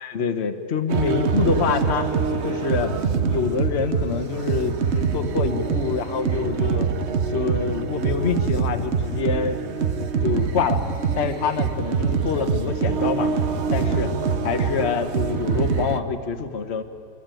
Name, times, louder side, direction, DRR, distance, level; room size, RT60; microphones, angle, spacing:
voice 1, 0.0-2.1 2.4-3.0 3.2-6.9 7.3-9.6 10.2-10.8 11.2-13.3 13.7-14.1 14.4-16.8, left 5 dB, 40° left, 6 dB, 1.4 m, -26 dB
sound 1, 0.9-16.0, right 5 dB, 45° right, 1.1 m, -24 dB
sound 2, 5.6-9.1, right 3 dB, 85° right, 5.1 m, -40 dB
26.0 x 23.0 x 9.2 m, 2.4 s
omnidirectional pair, 1.9 m